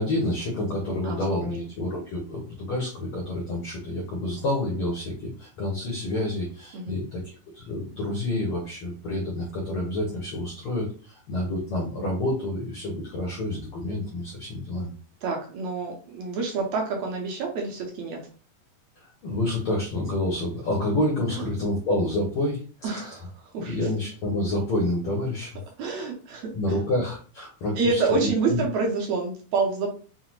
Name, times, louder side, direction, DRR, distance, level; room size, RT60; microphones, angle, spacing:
voice 1, 0.0-14.9 19.0-23.2 23.6-25.6 26.5-28.6, left 1 dB, 85° left, -1 dB, 1.2 m, -28 dB
voice 2, 1.0-1.6 6.7-7.0 15.2-18.2 21.3-21.5 22.8-23.8 25.8-26.8 27.8-29.9, right 4 dB, 75° right, 1 dB, 1.8 m, -28 dB
5.6 x 2.0 x 3.0 m, 0.38 s
omnidirectional pair, 3.8 m